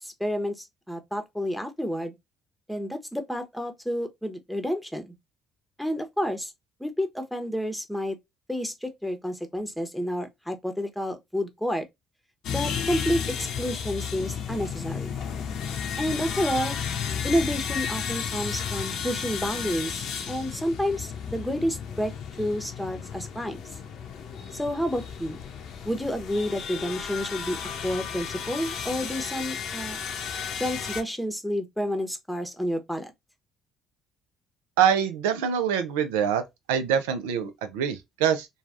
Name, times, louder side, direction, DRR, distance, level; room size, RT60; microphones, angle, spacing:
voice 1, 0.0-2.1 2.7-5.1 5.8-6.5 6.8-8.2 8.5-11.8 12.5-15.1 16.0-16.8 17.2-23.6 24.5-25.4 25.8-27.6 27.8-30.0 30.6-33.1, equal, ahead, 0.9 m, -30 dB
sound 1, 12.4-31.0, left 7 dB, 65° left, 0.7 m, -33 dB
voice 2, 34.8-36.4 36.7-38.5, right 8 dB, 85° right, 0.5 m, -24 dB
3.1 x 2.3 x 2.5 m
hypercardioid pair, 60°, 0 cm